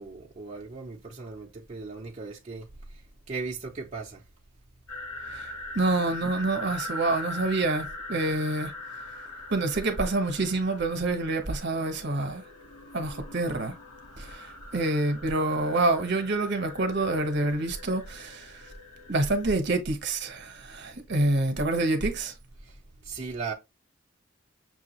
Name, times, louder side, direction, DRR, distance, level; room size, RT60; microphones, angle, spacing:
voice 1, 0.0-3.0 3.3-4.2 22.6-22.8 23.0-23.5, right 4 dB, 30° right, 0.6 m, -37 dB
sound 1, 4.9-19.5, left 2 dB, 90° left, 1.7 m, -42 dB
voice 2, 5.3-8.7 9.5-12.4 12.9-13.7 14.2-18.7 19.1-22.3, right 2 dB, 55° right, 1.0 m, -27 dB
6.1 x 2.4 x 3.0 m
head